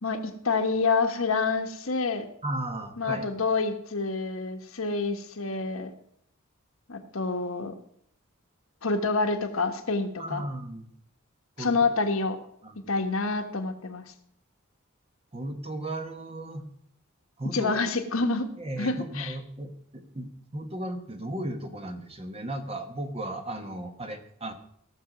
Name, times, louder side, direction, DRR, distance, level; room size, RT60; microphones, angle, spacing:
voice 1, 0.0-2.2 3.0-5.9 6.9-7.7 8.8-10.4 11.6-12.4 12.9-14.0 17.5-18.5 18.8-19.3, left 3 dB, 75° left, 5 dB, 1.3 m, -27 dB
voice 2, 2.4-3.3 10.2-10.9 11.6-11.8 12.6-12.9 15.3-16.6 17.4-17.8 18.6-24.5, right 1 dB, 30° right, 6 dB, 1.2 m, -35 dB
16.5 x 6.7 x 6.0 m, 0.70 s
head